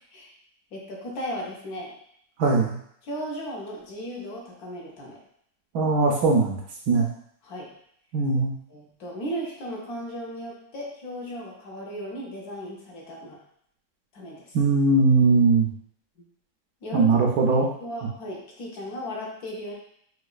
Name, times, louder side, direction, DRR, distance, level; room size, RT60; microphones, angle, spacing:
voice 1, 0.7-1.9 3.0-5.2 7.4-7.7 8.7-13.4 14.1-14.6 16.8-19.7, equal, 65° left, -2 dB, 1.1 m, -36 dB
voice 2, 2.4-2.7 5.7-6.6 6.9-7.1 8.1-8.5 14.5-15.7 16.9-17.7, right 3 dB, 70° right, 0 dB, 1.0 m, -20 dB
4.9 x 2.3 x 2.3 m, 0.69 s
omnidirectional pair, 1.9 m